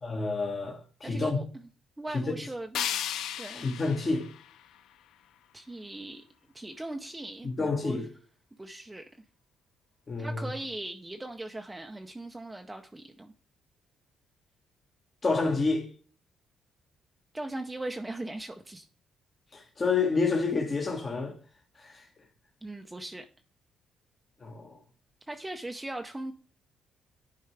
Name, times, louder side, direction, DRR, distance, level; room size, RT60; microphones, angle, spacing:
voice 1, 0.0-1.4 2.1-2.2 3.5-4.3 7.4-8.1 10.1-10.5 15.2-15.9 19.5-21.4 21.8-22.0 24.4-24.8, left 4 dB, 35° left, 1.4 m, -29 dB
voice 2, 1.0-1.4 2.0-2.9 3.4-3.6 5.5-6.2 6.5-8.1 8.6-9.0 10.2-13.3 17.3-18.9 22.6-23.3 25.3-26.3, right 1 dB, 15° right, 0.6 m, -39 dB
sound 1, 2.7-5.7, left 10 dB, 80° left, 0.4 m, -36 dB
10.5 x 4.6 x 3.3 m
cardioid pair, 90°, 0 cm